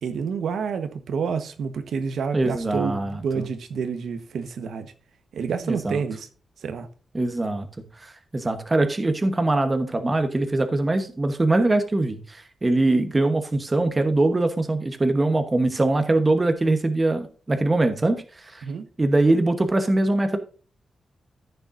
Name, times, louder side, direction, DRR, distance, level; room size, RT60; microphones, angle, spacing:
voice 1, 0.0-4.9 5.3-6.3 6.6-6.9 18.6-18.9, right 6 dB, 80° right, 1.2 m, -29 dB
voice 2, 2.3-3.4 5.6-6.0 7.1-7.7 8.0-18.2 18.5-18.6 19.0-20.4, right 2 dB, 20° right, 1.1 m, -22 dB
14.0 x 6.8 x 2.6 m
wide cardioid pair, 170°, 0 cm